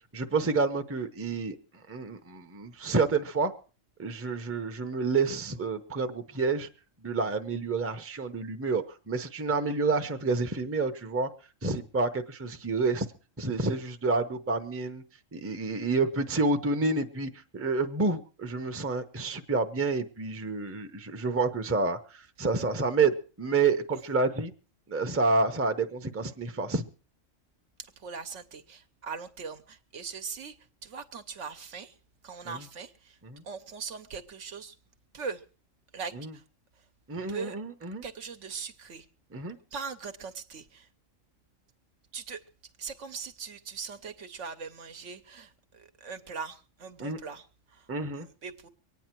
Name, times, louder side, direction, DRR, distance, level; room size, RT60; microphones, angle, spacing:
voice 1, 0.1-1.5 1.9-3.5 4.0-6.7 7.0-11.3 11.6-13.1 13.4-15.0 15.3-24.5 24.9-26.8 32.5-32.6 33.3-33.4 36.2-36.3 37.1-38.0 39.3-39.6 47.0-47.2 47.9-48.3, right 3 dB, 15° right, 0.7 m, -29 dB
voice 2, 27.8-30.6 30.8-32.0 32.2-33.2 33.4-34.8 35.1-35.4 35.9-36.4 36.7-36.8 37.3-37.6 38.0-39.1 39.7-40.9 42.1-42.4 42.8-47.9 48.1-48.7, right 5 dB, 70° right, 1.3 m, -40 dB
24.0 x 9.4 x 4.5 m
omnidirectional pair, 1.3 m